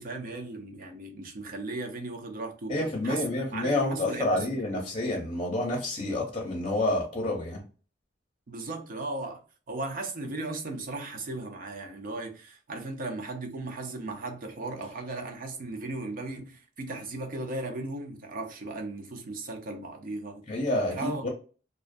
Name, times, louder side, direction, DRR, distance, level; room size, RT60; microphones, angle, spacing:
voice 1, 0.0-2.8 3.0-4.8 8.5-20.4 20.9-21.3, right 2 dB, 50° right, 0.5 m, -36 dB
voice 2, 2.7-7.6 20.5-21.3, left 2 dB, 30° left, 0.7 m, -28 dB
2.4 x 2.2 x 2.5 m
head